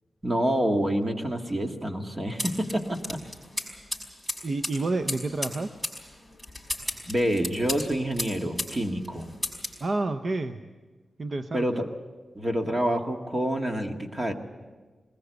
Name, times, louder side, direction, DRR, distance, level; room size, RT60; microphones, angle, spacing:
voice 1, 0.2-3.2 7.1-9.3 11.5-11.9 12.4-14.3, right 1 dB, 30° right, 4 dB, 1.8 m, -27 dB
sound 1, 2.4-8.8 9.0-9.8, left 1 dB, 10° right, 5.3 m, -34 dB
voice 2, 4.4-5.8 9.8-10.6 11.2-11.9, right 2 dB, 45° right, 8 dB, 0.7 m, -29 dB
20.5 x 20.0 x 8.1 m, 1.4 s
wide cardioid pair, 125°, 0 cm